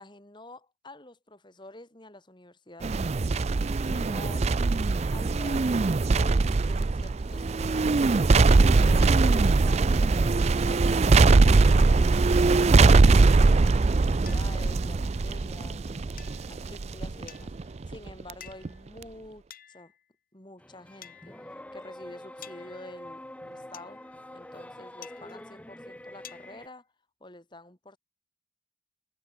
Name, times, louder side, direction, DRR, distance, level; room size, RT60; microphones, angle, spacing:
voice 1, 0.0-3.2 3.8-4.5 5.1-8.2 8.6-11.0 11.4-12.1 12.7-19.9 20.3-21.3 21.7-24.0 24.3-26.9 27.2-28.0, left 1 dB, 25° left, 2.9 m, -48 dB
sound 1, 2.8-18.3 18.7-18.8, right 3 dB, 35° right, 0.4 m, -21 dB
sound 2, 14.3-14.4 16.2-16.6 17.3-17.7 18.4-18.8 19.5-20.1 21.0-21.6 22.4-23.2 23.7-24.3 25.0-25.6 26.2-26.8, left 11 dB, 45° left, 6.8 m, -50 dB
sound 3, 20.6-26.7, left 1 dB, 5° left, 1.0 m, -45 dB
head